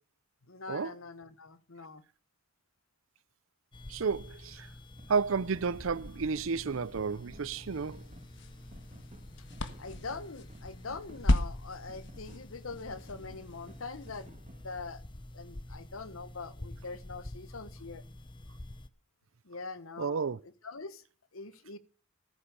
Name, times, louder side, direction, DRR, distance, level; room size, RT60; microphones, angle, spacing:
voice 1, 0.5-2.0 9.8-15.0 15.3-18.0 19.4-20.3 20.6-21.0 21.3-21.8, left 4 dB, 90° left, 1.2 m, -43 dB
sound 1, 3.7-18.9, left 1 dB, 25° left, 0.8 m, -48 dB
voice 2, 3.9-4.7 5.1-8.0 20.0-20.4, right 5 dB, 75° right, 0.6 m, -32 dB
sound 2, 5.0-5.1 5.5-11.5 11.9-14.9, right 1 dB, 35° right, 1.5 m, -54 dB
sound 3, 7.7-14.3, left 1 dB, 60° left, 1.4 m, -36 dB
13.5 x 9.8 x 6.8 m
head